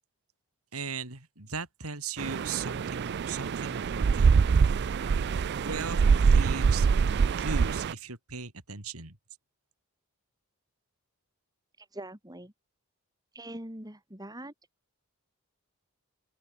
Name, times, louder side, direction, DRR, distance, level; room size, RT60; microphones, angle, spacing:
voice 1, 0.7-4.3 5.5-6.9 7.4-9.2, right 5 dB, 75° right, 3.9 m, -38 dB
sound 1, 2.2-7.9, right 5 dB, 50° right, 0.3 m, -24 dB
voice 2, 11.8-12.5 13.3-14.5, right 1 dB, 15° right, 4.3 m, -43 dB
open air
head